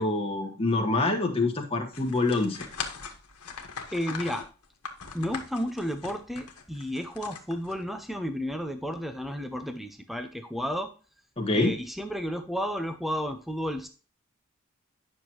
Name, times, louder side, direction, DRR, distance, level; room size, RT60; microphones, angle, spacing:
voice 1, 0.0-2.7 11.4-11.7, left 2 dB, 25° left, 1 dB, 1.4 m, -26 dB
sound 1, 1.9-8.1, left 6 dB, 85° left, 1.4 m, -40 dB
voice 2, 3.9-4.5 5.1-10.9 11.5-13.9, equal, ahead, 7 dB, 0.7 m, -32 dB
10.0 x 6.3 x 3.0 m, 0.35 s
head